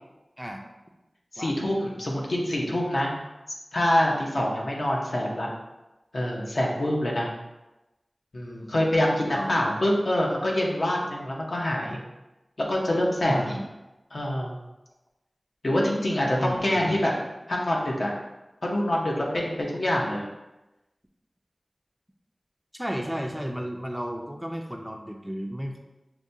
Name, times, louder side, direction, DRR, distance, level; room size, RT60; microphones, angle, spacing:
voice 1, 1.3-3.1 3.7-5.5 6.1-7.3 8.3-12.0 12.6-13.6 14.1-14.6 15.6-17.1 17.5-18.1 18.6-20.3, left 1 dB, 70° left, -2 dB, 0.8 m, -25 dB
voice 2, 9.2-9.6 13.2-13.6 16.4-17.0 22.7-25.8, equal, 5° right, 2 dB, 0.4 m, -33 dB
5.9 x 2.2 x 2.7 m, 1.0 s
wide cardioid pair, 60°, 0 cm